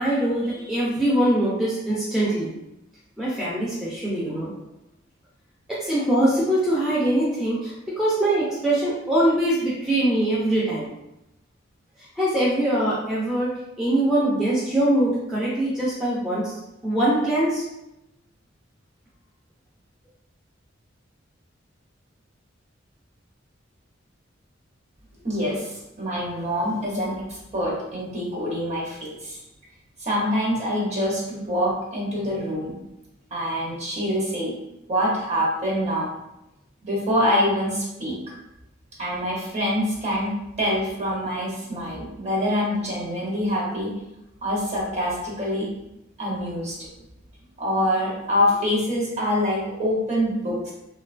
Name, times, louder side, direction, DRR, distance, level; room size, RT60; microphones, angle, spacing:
voice 1, 0.0-2.5 3.2-4.5 5.7-10.9 12.2-16.5 16.8-17.6, right 1 dB, 5° right, -8 dB, 0.4 m, -23 dB
voice 2, 25.2-29.4 30.0-32.8 33.3-34.6 34.9-36.1 36.8-38.1 39.0-43.9 44.4-45.7 46.2-46.9 47.6-50.7, equal, 35° right, -5 dB, 0.8 m, -25 dB
2.8 x 2.2 x 2.4 m, 0.88 s
head